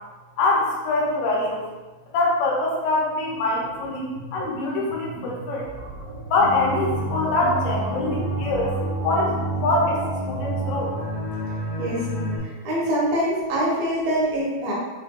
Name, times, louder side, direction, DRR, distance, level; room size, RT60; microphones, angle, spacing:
voice 1, 0.4-1.7 2.1-5.7 6.3-8.8 9.0-9.4 9.6-10.9, left 2 dB, 80° left, -3 dB, 2.5 m, -24 dB
sound 1, 3.1-10.2, right 3 dB, 85° right, 3.1 m, -38 dB
sound 2, 6.4-12.4, right 1 dB, 55° left, 1.8 m, -28 dB
voice 2, 12.4-14.7, right 1 dB, 70° right, -6 dB, 2.9 m, -24 dB
6.4 x 3.3 x 2.3 m, 1.2 s
omnidirectional pair, 4.5 m